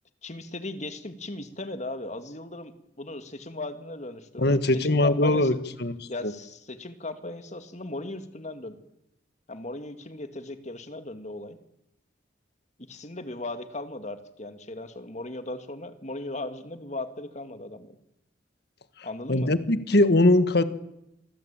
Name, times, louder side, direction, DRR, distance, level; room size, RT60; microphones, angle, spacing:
voice 1, 0.2-2.7 3.0-5.6 6.1-8.8 9.5-11.6 12.9-17.9 19.0-19.5, left 2 dB, 40° left, 9 dB, 2.2 m, -37 dB
voice 2, 4.4-5.5 5.8-5.9 6.2-6.3 19.3-20.6, left 1 dB, 60° left, 12 dB, 1.6 m, -21 dB
27.0 x 20.0 x 9.0 m, 0.84 s
head